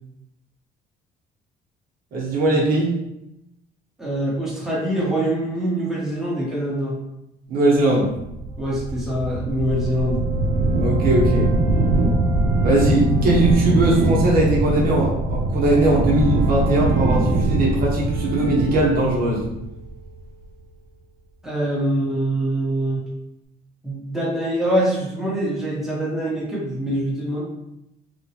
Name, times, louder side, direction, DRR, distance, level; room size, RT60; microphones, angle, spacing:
voice 1, 2.1-2.9 7.5-8.1 10.8-11.5 12.6-19.5, right 1 dB, 60° right, -3 dB, 0.9 m, -20 dB
voice 2, 4.0-7.0 8.6-10.2 21.4-23.1 23.8-27.4, right 1 dB, ahead, -6 dB, 1.0 m, -24 dB
sound 1, 8.2-20.2, right 2 dB, 85° right, 0.5 m, -22 dB
2.9 x 2.3 x 2.8 m, 0.86 s
cardioid pair, 110°, 17 cm